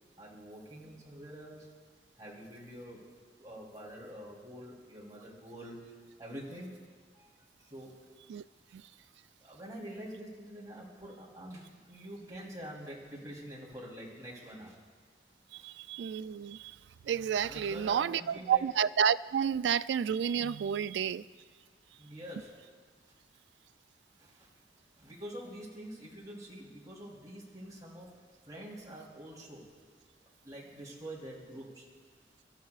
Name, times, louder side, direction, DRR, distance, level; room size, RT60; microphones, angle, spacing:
voice 1, 0.2-1.7 2.2-3.0 3.4-5.8 6.2-6.8 7.1-7.3 7.6-8.0 9.4-14.8 15.5-15.7 17.4-18.6 22.0-22.7 24.2-24.5 25.0-29.7 30.1-31.9, equal, 20° right, -5 dB, 3.2 m, -46 dB
voice 2, 15.6-16.7 17.1-21.2, right 8 dB, 80° right, 16 dB, 0.3 m, -30 dB
29.0 x 13.0 x 2.4 m, 1.5 s
head